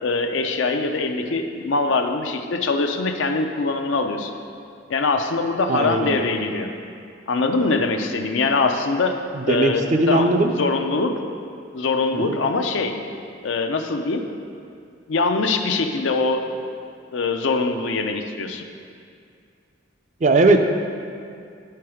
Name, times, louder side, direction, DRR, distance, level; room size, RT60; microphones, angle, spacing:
voice 1, 0.0-4.3 4.9-6.7 7.3-9.2 9.5-11.2 11.7-13.0 13.4-14.2 15.1-16.5 17.1-18.7, left 3 dB, 75° left, 5 dB, 0.5 m, -23 dB
voice 2, 5.7-6.2 9.3-10.5 12.1-12.4 20.2-20.6, right 2 dB, 40° right, 5 dB, 0.4 m, -19 dB
8.8 x 4.6 x 4.8 m, 2.3 s
head